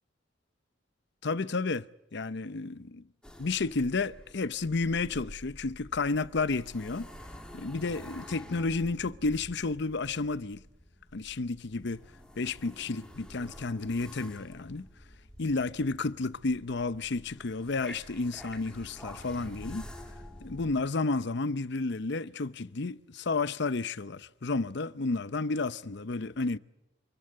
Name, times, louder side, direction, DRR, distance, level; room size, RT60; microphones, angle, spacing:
voice 1, 1.2-3.0 3.4-7.1 7.5-10.6 11.1-12.0 12.4-14.9 15.4-19.9 20.4-26.6, left 3 dB, 65° left, 0.7 m, -31 dB
sound 1, 3.2-20.8, equal, 5° left, 2.7 m, -49 dB
27.0 x 14.5 x 9.5 m
head